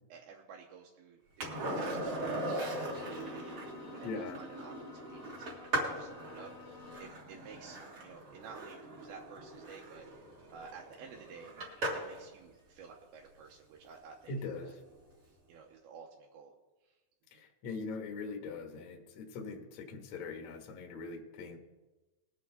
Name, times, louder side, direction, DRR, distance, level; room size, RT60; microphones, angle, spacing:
voice 1, 0.1-3.7 3.9-10.1 10.5-11.5 11.9-14.3 14.6-14.8 15.5-16.5 16.8-17.0 17.3-17.4, right 6 dB, 80° right, 0 dB, 3.1 m, -53 dB
Skateboard, 1.4-12.2 14.8-14.9, right 1 dB, 40° right, 2.1 m, -39 dB
Bowed string instrument, 1.8-7.3, left 8 dB, 55° left, 1.7 m, -54 dB
voice 2, 4.0-4.4 14.3-14.7 17.3-21.6, left 3 dB, 70° left, 3 dB, 1.7 m, -41 dB
20.5 x 7.7 x 3.9 m, 1.1 s
omnidirectional pair, 5.3 m